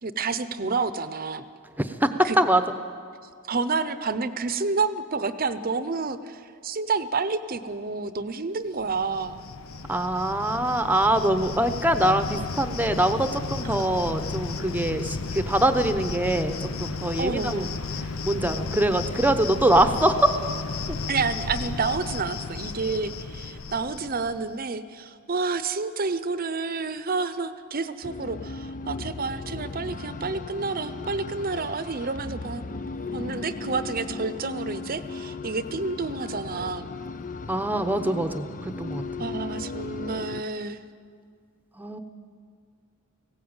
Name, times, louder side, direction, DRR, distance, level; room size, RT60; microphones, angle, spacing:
voice 1, 0.0-1.4 2.2-2.4 3.5-9.4 17.2-17.8 21.1-32.6 33.1-36.9 39.2-40.8, right 4 dB, 45° right, 13 dB, 0.8 m, -29 dB
voice 2, 1.8-2.6 9.9-17.7 18.0-20.3 37.5-39.0 41.8-42.0, right 1 dB, 10° right, 9 dB, 0.9 m, -23 dB
Cricket, 8.8-24.5, left 4 dB, 75° left, 0.8 m, -33 dB
sound 1, 28.0-40.4, left 3 dB, 40° left, 0.6 m, -36 dB
19.0 x 16.0 x 8.9 m, 2.1 s
head